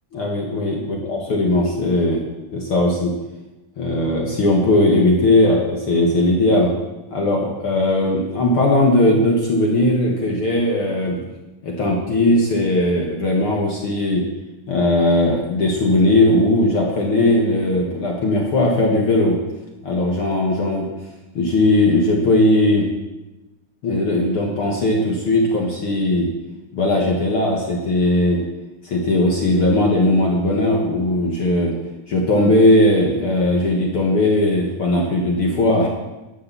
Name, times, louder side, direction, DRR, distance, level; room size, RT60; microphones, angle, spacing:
voice 1, 0.1-0.8 1.1-2.2 2.5-3.1 3.8-6.7 7.1-11.2 11.6-14.2 14.7-19.4 19.8-20.9 21.3-22.9 23.8-26.3 26.7-28.4 28.8-31.7 32.1-35.9, left 1 dB, 50° left, -1 dB, 2.2 m, -18 dB
11.5 x 8.8 x 6.9 m, 1.1 s
omnidirectional pair, 3.4 m